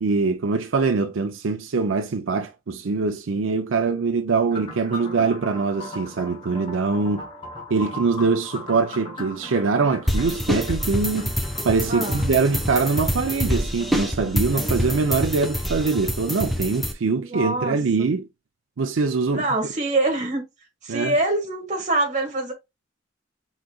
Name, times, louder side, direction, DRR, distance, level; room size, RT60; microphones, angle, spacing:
voice 1, 0.0-7.3 7.7-11.3 11.6-18.3 18.8-19.4 20.9-21.2, right 4 dB, 80° right, 0.5 m, -23 dB
sound 1, 4.5-16.2, left 1 dB, 25° left, 1.1 m, -39 dB
sound 2, 10.1-16.9, equal, ahead, 0.6 m, -26 dB
voice 2, 11.9-12.2 17.0-17.8 19.3-20.4 20.8-22.5, right 2 dB, 40° right, 1.6 m, -24 dB
4.8 x 4.0 x 2.3 m
head